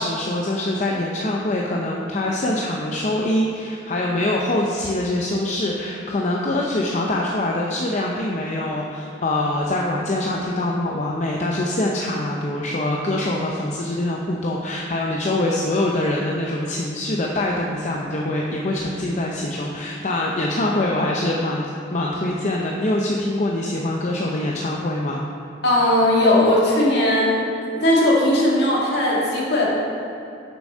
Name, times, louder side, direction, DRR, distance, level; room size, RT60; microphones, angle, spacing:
voice 1, 0.0-25.3, left 1 dB, 40° left, -2 dB, 0.6 m, -24 dB
voice 2, 25.6-27.4 27.7-29.7, left 1 dB, 60° left, -5 dB, 1.9 m, -18 dB
6.8 x 6.2 x 5.4 m, 2.6 s
head